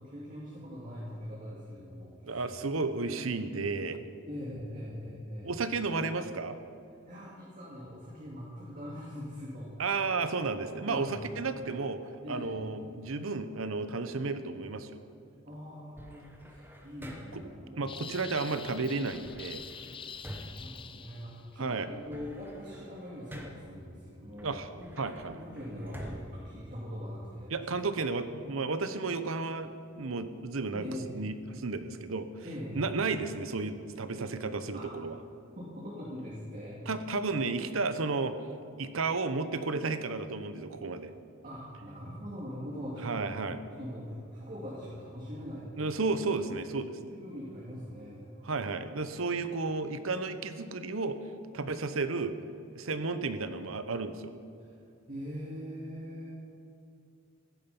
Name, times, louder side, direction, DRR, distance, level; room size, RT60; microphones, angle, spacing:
voice 1, 0.0-2.4 3.0-3.2 4.3-5.5 7.1-9.7 10.8-11.2 12.2-12.6 15.4-17.9 20.5-24.9 25.3-27.5 28.2-28.6 30.7-31.2 32.4-32.8 34.7-34.9 35.5-36.8 41.4-43.2 43.7-45.9 47.0-48.6 54.6-54.7 55.1-56.3, equal, 40° right, -5 dB, 2.3 m, -42 dB
voice 2, 2.2-4.0 5.4-6.6 9.8-12.0 12.3-15.0 17.3-17.4 17.8-19.6 21.6-21.9 24.4-24.7 25.0-25.4 27.5-29.7 30.0-30.9 31.1-32.5 32.7-35.2 36.9-38.4 38.8-41.1 43.0-43.6 45.8-47.0 48.4-51.2 51.5-52.3 52.7-54.3, right 3 dB, 75° right, 11 dB, 0.9 m, -33 dB
sound 1, 16.0-17.6 19.0-21.5 21.9-23.8 24.4-27.4, equal, 10° right, 1.2 m, -48 dB
sound 2, 17.9-21.5, left 7 dB, 25° left, 0.4 m, -45 dB
15.5 x 11.5 x 5.4 m, 2.6 s
head